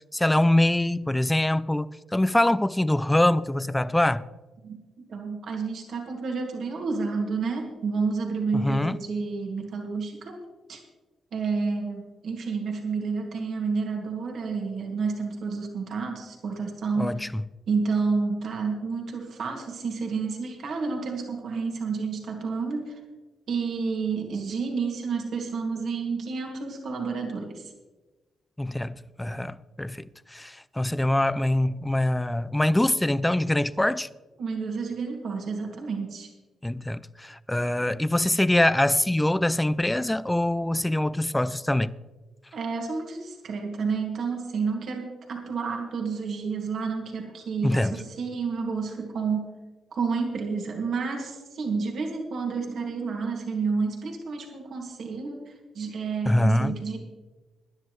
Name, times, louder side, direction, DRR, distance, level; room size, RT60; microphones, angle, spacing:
voice 1, 0.1-4.2 8.5-9.0 17.0-17.4 28.6-34.1 36.6-41.9 47.6-47.9 56.3-56.8, left 1 dB, 10° left, 0.5 m, -24 dB
voice 2, 4.6-10.4 10.7-10.8 11.3-17.3 17.7-23.0 23.5-27.7 34.4-36.3 42.5-49.5 49.9-57.0, right 4 dB, 70° right, 2.3 m, -30 dB
20.0 x 10.5 x 3.2 m
cardioid pair, 75°, 0 cm